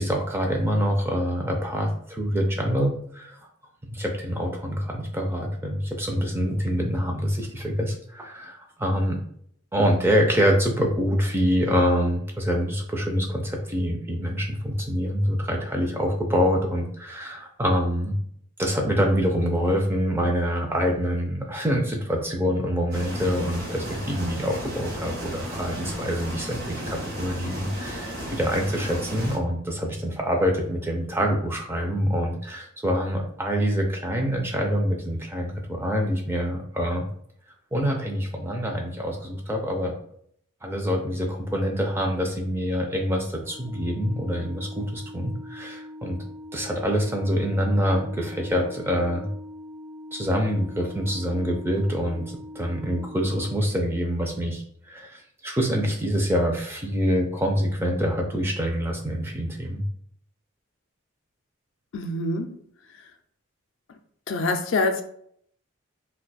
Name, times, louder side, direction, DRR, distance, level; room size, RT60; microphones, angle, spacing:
voice 1, 0.0-3.4 3.9-9.2 9.7-18.2 18.6-37.0 37.7-39.9 40.6-46.2 46.5-49.3 50.1-59.8, equal, 10° right, 0.4 m, -25 dB
sound 1, 22.9-29.4, equal, 45° right, 0.8 m, -34 dB
Organ, 43.4-54.3, left 1 dB, 85° right, 1.0 m, -42 dB
voice 2, 61.9-62.5 64.3-65.0, left 2 dB, 65° left, 0.4 m, -25 dB
2.5 x 2.2 x 4.0 m
head